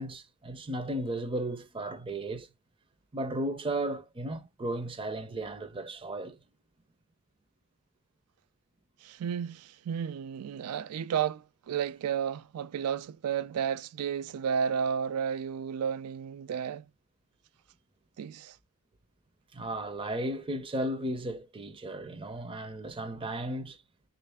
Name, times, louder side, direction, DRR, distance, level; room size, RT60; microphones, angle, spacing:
voice 1, 0.0-2.5 3.1-6.4 19.5-23.8, right 1 dB, 25° right, 0.5 m, -35 dB
voice 2, 9.0-16.9 18.2-18.6, right 7 dB, 85° right, 0.3 m, -32 dB
3.2 x 2.5 x 3.3 m
head